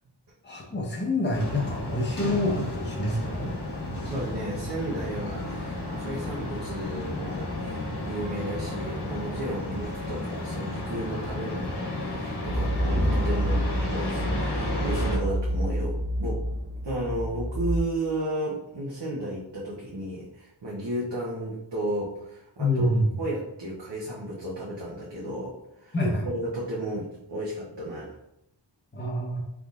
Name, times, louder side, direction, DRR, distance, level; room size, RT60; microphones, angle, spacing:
voice 1, 0.4-3.5 22.6-23.1 25.9-26.3 28.9-29.4, left 1 dB, 25° left, -1 dB, 0.9 m, -27 dB
sound 1, 1.3-15.2, left 1 dB, 60° left, 1.3 m, -32 dB
voice 2, 4.0-16.4 16.8-22.9 23.2-25.9 26.2-28.2, right 1 dB, 60° right, -5 dB, 0.9 m, -33 dB
sound 2, 12.4-17.8, equal, 20° right, 0.4 m, -28 dB
3.9 x 3.5 x 2.4 m, 0.83 s
wide cardioid pair, 50°, 46 cm